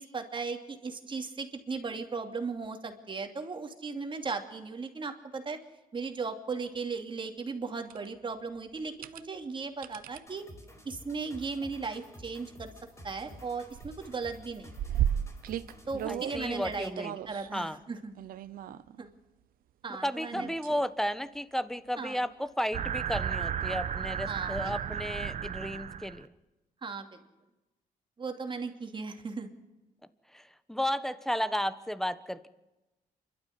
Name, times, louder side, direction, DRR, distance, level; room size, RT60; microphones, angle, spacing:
voice 1, 0.0-5.6 5.9-10.5 10.8-12.7 13.0-14.7 15.9-18.1 19.0-19.1 19.8-20.5 22.0-22.2 24.3-24.7 26.8-27.2 28.2-29.5, right 4 dB, 35° right, 5 dB, 2.7 m, -37 dB
sound 1, 7.9-8.1 8.8-9.2 9.8-10.2 11.4-11.6 12.1-12.2 12.5-13.4 13.7-16.4 17.0-17.5 18.2-19.1 20.3-20.9 21.4-21.5 23.8-23.9, right 10 dB, 85° right, 0.9 m, -35 dB
sound 2, 10.3-17.1, left 1 dB, 20° left, 5.0 m, -51 dB
voice 2, 16.1-17.1 17.5-17.8 20.0-26.3 30.3-30.4 30.7-32.5, equal, 5° left, 13 dB, 1.2 m, -33 dB
sound 3, 22.7-26.2, right 8 dB, 55° right, 1.1 m, -34 dB
27.5 x 12.5 x 9.5 m, 1.0 s
cardioid pair, 105°, 15 cm